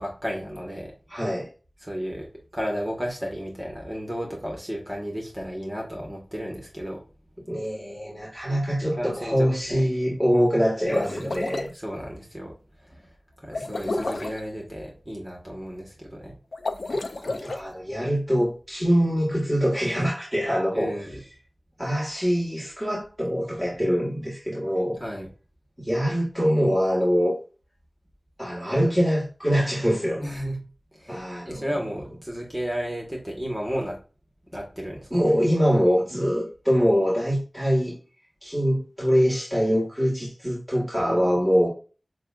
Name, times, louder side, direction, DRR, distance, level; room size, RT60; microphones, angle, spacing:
voice 1, 0.0-0.9 1.8-7.0 8.8-9.8 10.9-11.4 11.7-12.5 12.8-16.3 20.7-21.2 25.0-25.3 30.2-30.6 30.9-34.0 34.5-35.3 41.0-41.4, equal, 20° right, -1 dB, 1.4 m, -33 dB
voice 2, 1.1-1.5 7.5-11.7 13.5-13.6 16.9-20.9 21.8-25.0 25.8-27.4 28.4-30.2 31.1-31.7 35.1-37.9 38.4-41.7, equal, ahead, -6 dB, 1.8 m, -24 dB
sound 1, 10.8-11.7 13.5-14.4 16.5-17.6, left 2 dB, 80° left, 0.5 m, -30 dB
6.3 x 2.4 x 2.4 m, 0.35 s
wide cardioid pair, 45°, 0 cm